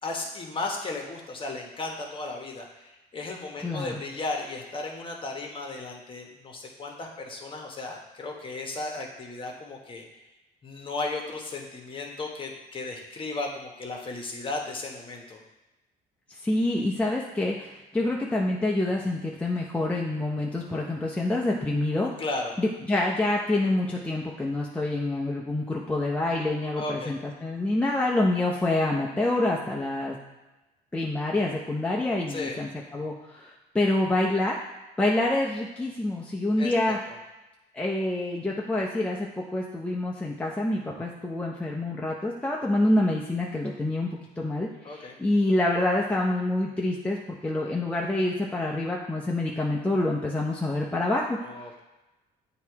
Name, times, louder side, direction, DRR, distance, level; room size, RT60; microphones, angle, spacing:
voice 1, 0.0-10.0 10.6-15.4 22.2-22.6 26.8-27.1 32.3-32.6 36.6-36.9 44.8-45.2 51.4-51.8, left 3 dB, 30° left, 1 dB, 1.2 m, -35 dB
voice 2, 3.6-4.0 16.3-22.1 22.6-30.2 30.9-34.6 35.0-37.0 37.7-51.4, left 2 dB, 5° left, -3 dB, 0.6 m, -27 dB
8.2 x 2.9 x 4.6 m, 1.1 s
cardioid pair, 110°, 17 cm